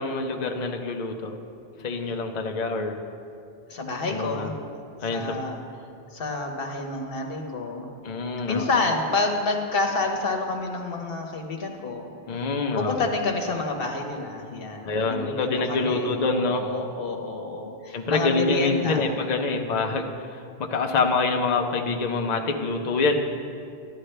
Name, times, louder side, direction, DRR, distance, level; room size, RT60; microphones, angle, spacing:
voice 1, 0.0-1.4 1.8-3.0 4.1-4.5 5.0-5.4 8.0-8.7 12.3-13.1 14.8-16.7 17.9-20.1 20.6-23.2, left 3 dB, 45° left, 3 dB, 0.8 m, -26 dB
voice 2, 3.7-4.5 5.0-5.6 6.1-7.9 8.5-12.1 12.7-16.1 16.5-19.1, left 3 dB, 60° left, 3 dB, 1.3 m, -28 dB
13.0 x 11.0 x 3.3 m, 2.4 s
omnidirectional pair, 1.1 m